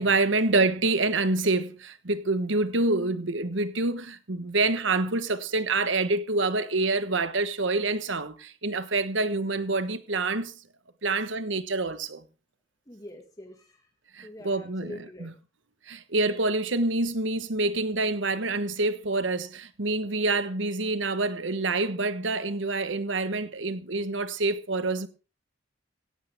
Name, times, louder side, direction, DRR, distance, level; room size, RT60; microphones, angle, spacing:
voice 1, 0.0-10.5 11.0-12.2 14.1-14.9 15.2-15.3 15.9-25.1, right 3 dB, 70° right, 1.3 m, -27 dB
voice 2, 12.9-13.9 14.2-15.3, left 1 dB, 20° left, 1.9 m, -44 dB
17.5 x 15.0 x 3.6 m
head